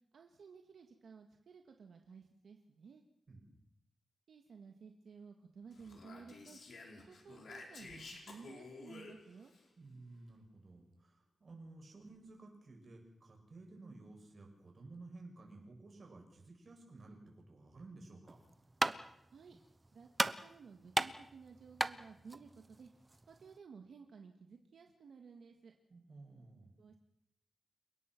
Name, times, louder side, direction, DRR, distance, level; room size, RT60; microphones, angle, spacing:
voice 1, 0.1-3.0 4.3-6.6 7.1-9.5 19.3-19.6 19.9-22.9 23.3-25.7 26.8-27.0, right 5 dB, 85° right, 4 dB, 1.9 m, -55 dB
Speech, 5.7-9.6, left 3 dB, 70° left, 5.1 m, -52 dB
voice 2, 9.8-18.4 25.9-26.7, right 2 dB, 45° right, 1 dB, 7.1 m, -54 dB
sound 1, 18.3-23.6, right 2 dB, 20° right, 0.9 m, -38 dB
30.0 x 17.5 x 6.1 m, 0.77 s
wide cardioid pair, 125°, 0 cm